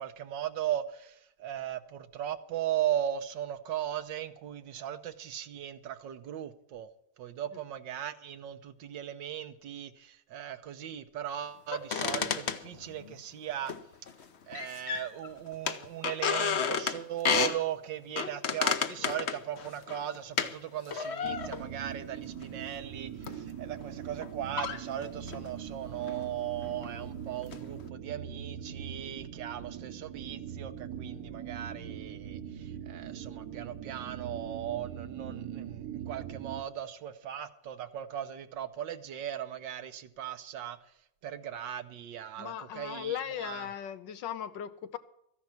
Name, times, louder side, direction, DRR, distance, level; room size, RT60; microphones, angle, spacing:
voice 1, 0.0-6.9 7.2-13.7 14.0-14.1 14.5-40.9 41.2-43.7, right 11 dB, 80° right, 11 dB, 1.6 m, -38 dB
sound 1, 11.7-13.1 13.7-14.2 14.5-15.3 15.7-17.6 18.2-20.5 20.9-21.7 22.4-22.6 23.2-23.4 24.2-24.3 24.6-25.5 26.1-26.2 26.6-27.1 27.4-27.9, left 6 dB, 50° left, 0.9 m, -32 dB
sound 2, 21.2-36.6, right 8 dB, 60° right, 1.4 m, -42 dB
voice 2, 42.4-45.0, left 9 dB, 75° left, 12 dB, 1.6 m, -37 dB
14.0 x 10.5 x 5.9 m, 0.76 s
omnidirectional pair, 2.0 m